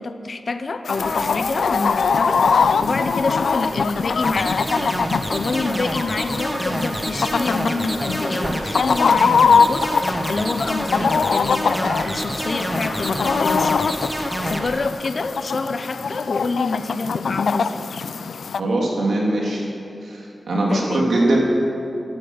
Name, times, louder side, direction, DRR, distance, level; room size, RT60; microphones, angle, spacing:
voice 1, 0.0-13.9 14.2-17.9 20.7-21.1, left 3 dB, 55° left, 9 dB, 0.8 m, -27 dB
Chicken rooster, 0.9-18.6, left 5 dB, 90° left, 0.4 m, -22 dB
sound 1, 0.9-14.9, right 1 dB, 25° right, 0.9 m, -35 dB
sound 2, 4.2-14.7, equal, ahead, 1.4 m, -27 dB
voice 2, 18.6-19.6 20.0-21.4, right 2 dB, 80° right, -3 dB, 3.1 m, -21 dB
13.0 x 12.0 x 7.2 m, 2.8 s
wide cardioid pair, 75°, 0 cm